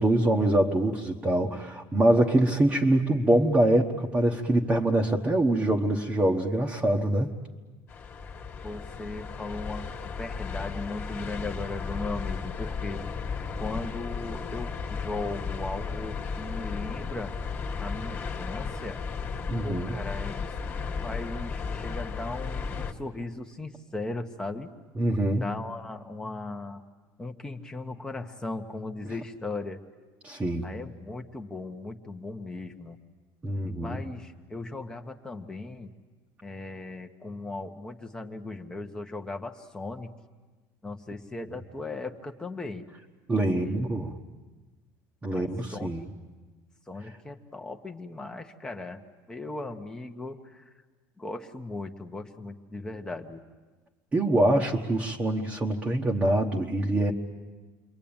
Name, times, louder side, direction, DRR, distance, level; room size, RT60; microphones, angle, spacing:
voice 1, 0.0-7.3 19.5-20.0 25.0-25.4 30.2-30.7 33.4-34.0 43.3-44.1 45.2-46.1 54.1-57.1, right 1 dB, 15° right, -1 dB, 1.2 m, -24 dB
sound 1, 7.9-22.9, left 5 dB, 25° left, 1.8 m, -34 dB
voice 2, 8.6-9.9 10.2-13.0 13.6-17.3 17.8-19.0 19.6-24.7 25.3-26.8 27.2-29.8 30.6-33.0 33.6-35.9 36.4-40.1 40.8-42.8 43.5-43.8 45.3-45.9 46.9-49.0 49.3-50.6 51.2-53.4, left 2 dB, 10° left, 4 dB, 1.1 m, -37 dB
28.5 x 23.0 x 8.8 m, 1.3 s
cardioid pair, 160°, 8 cm